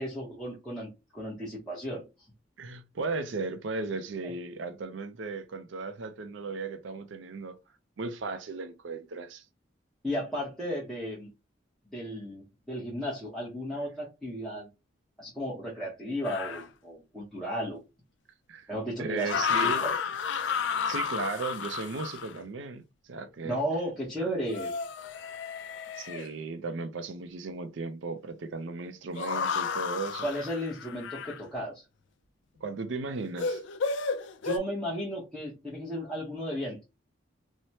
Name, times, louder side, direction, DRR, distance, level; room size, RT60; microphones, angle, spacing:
voice 1, 0.0-2.0 10.0-11.3 11.9-14.7 15.2-17.8 18.7-19.9 23.4-24.7 30.2-31.8 34.4-36.8, equal, ahead, 0.7 m, -34 dB
voice 2, 2.6-7.6 8.0-9.4 18.5-18.7 19.0-19.9 20.8-23.6 24.2-24.3 26.0-30.3 32.6-33.6, right 3 dB, 70° right, 0.5 m, -36 dB
sound 1, 16.2-16.6 19.2-22.4 24.4-26.3 29.2-31.4 33.4-34.6, left 6 dB, 65° left, 0.3 m, -32 dB
3.2 x 2.0 x 2.7 m
head